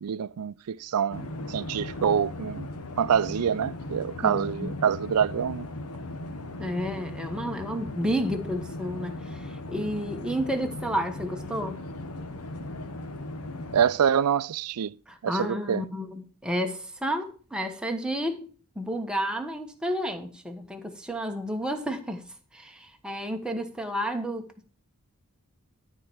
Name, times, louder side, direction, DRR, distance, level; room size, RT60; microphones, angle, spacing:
voice 1, 0.0-5.7 13.7-14.9 15.2-15.8, right 8 dB, 85° right, 0.4 m, -26 dB
sound 1, 1.1-13.9, left 2 dB, 80° left, 1.2 m, -37 dB
voice 2, 4.2-4.8 6.6-11.8 15.1-18.5 18.7-22.2 22.5-24.6, equal, 5° right, 1.2 m, -31 dB
12.5 x 4.6 x 7.1 m
head